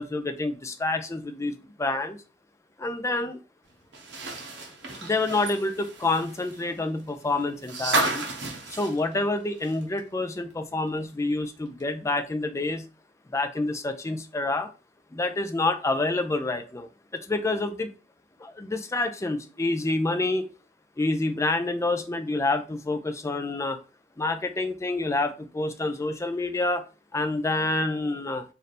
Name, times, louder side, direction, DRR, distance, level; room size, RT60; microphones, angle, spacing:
voice 1, 0.0-2.2 2.8-3.4 5.0-8.3 8.7-12.8 13.3-14.7 15.1-17.9 18.4-20.5 21.0-23.8 24.2-26.8 27.1-28.4, left 2 dB, 15° left, 8 dB, 0.4 m, -28 dB
sound 1, 3.9-10.0 10.3-10.4 11.8-11.9, right 2 dB, 65° right, 1.0 m, -32 dB
3.2 x 2.7 x 4.1 m, 0.33 s
head